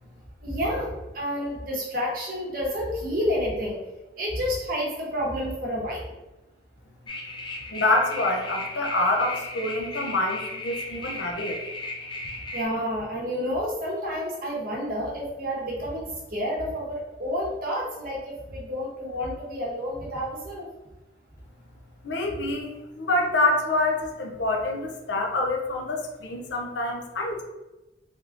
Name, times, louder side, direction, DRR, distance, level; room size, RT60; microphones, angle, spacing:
voice 1, 0.4-3.8 4.2-6.0 12.5-20.7, equal, 50° right, -4 dB, 1.0 m, -29 dB
sound 1, 7.1-12.7, left 2 dB, 25° left, 0.3 m, -36 dB
voice 2, 7.7-11.6 22.0-27.4, left 2 dB, 70° left, 2 dB, 0.6 m, -26 dB
3.4 x 3.0 x 2.5 m, 1.0 s
head